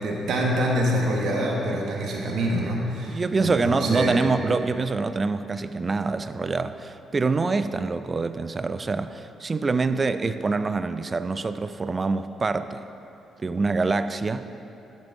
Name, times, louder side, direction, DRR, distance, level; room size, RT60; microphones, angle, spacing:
voice 1, 0.0-4.2, right 1 dB, 70° right, -1 dB, 1.2 m, -25 dB
voice 2, 3.1-12.8 13.4-14.5, right 3 dB, 30° right, 11 dB, 0.3 m, -25 dB
11.5 x 6.7 x 3.6 m, 2.9 s
cardioid pair, 90°, 0 cm